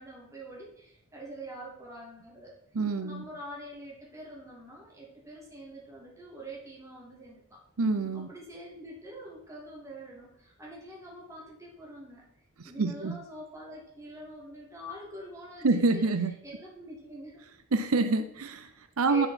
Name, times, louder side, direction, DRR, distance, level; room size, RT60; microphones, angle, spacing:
voice 1, 0.0-2.6 3.0-7.6 8.1-12.3 12.6-16.1 16.4-17.4 19.1-19.3, right 1 dB, 15° right, -3 dB, 2.9 m, -45 dB
voice 2, 2.7-3.2 7.8-8.3 12.6-13.2 15.6-16.4 17.7-19.3, right 3 dB, 80° right, 9 dB, 0.7 m, -27 dB
10.0 x 6.1 x 5.9 m, 0.73 s
head